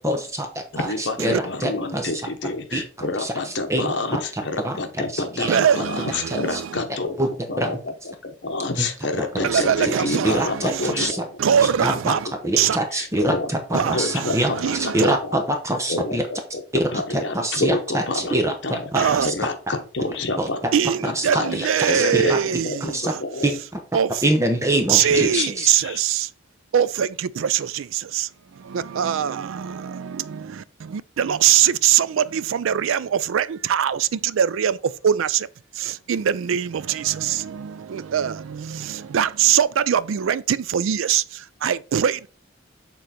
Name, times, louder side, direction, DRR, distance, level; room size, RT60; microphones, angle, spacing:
voice 1, 0.0-2.1 2.7-2.8 3.2-4.2 4.6-4.8 5.1-5.6 6.3-6.6 7.2-7.3 7.6-7.8 8.8-8.9 9.2-11.3 11.8-12.2 12.4-14.5 14.9-16.2 16.7-19.3 20.4-20.7 21.0-21.6 21.9-23.1 23.4-23.5 24.2-25.7, right 1 dB, 15° right, 0.8 m, -25 dB
voice 2, 0.7-7.2 7.5-7.9 8.2-11.2 12.9-15.4 15.9-16.6 16.9-20.6 21.0-22.9 23.2-23.6 25.0-26.0, left 3 dB, 60° left, 1.1 m, -28 dB
voice 3, 5.4-6.8 9.4-11.1 11.4-12.3 12.6-12.8 13.7-15.1 18.9-19.3 20.7-23.2 23.9-24.2 24.9-26.3 26.7-35.5 35.7-42.3, right 9 dB, 85° right, 0.4 m, -22 dB
6.8 x 3.9 x 4.3 m
head